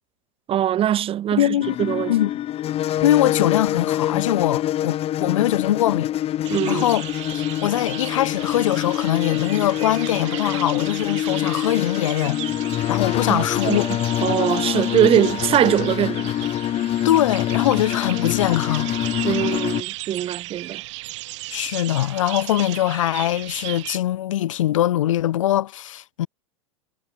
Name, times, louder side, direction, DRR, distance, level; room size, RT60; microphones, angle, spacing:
voice 1, 0.5-2.1 6.5-6.9 13.3-13.8 14.2-16.3 19.2-20.8, right 11 dB, 35° right, 2.4 m, -22 dB
voice 2, 1.4-1.8 2.1-2.3 3.0-6.1 6.7-7.0 7.3-12.4 12.9-13.9 17.0-18.9 21.5-26.3, left 13 dB, 75° left, 1.6 m, -22 dB
sound 1, 1.6-19.8, left 12 dB, 35° left, 2.8 m, -25 dB
sound 2, 6.4-24.0, right 19 dB, 65° right, 2.1 m, -35 dB
hypercardioid pair, 100°, 17 cm